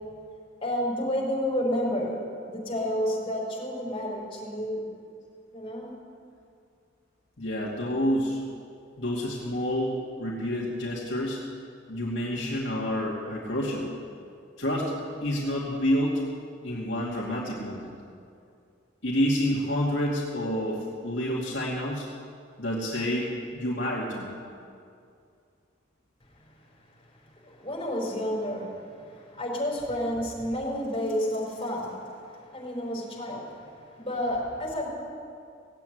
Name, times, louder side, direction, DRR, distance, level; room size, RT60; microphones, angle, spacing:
voice 1, 0.6-2.2 2.5-4.9 5.5-5.9 27.4-28.7 29.1-31.9 32.5-33.5 34.0-34.9, equal, 25° left, -4 dB, 4.7 m, -30 dB
voice 2, 1.8-2.1 7.4-8.4 9.0-11.4 11.9-13.9 14.6-14.9 15.2-16.2 16.6-17.9 19.0-22.1 22.6-24.3, equal, 65° left, -5 dB, 2.5 m, -28 dB
18.0 x 8.4 x 9.4 m, 2.4 s
head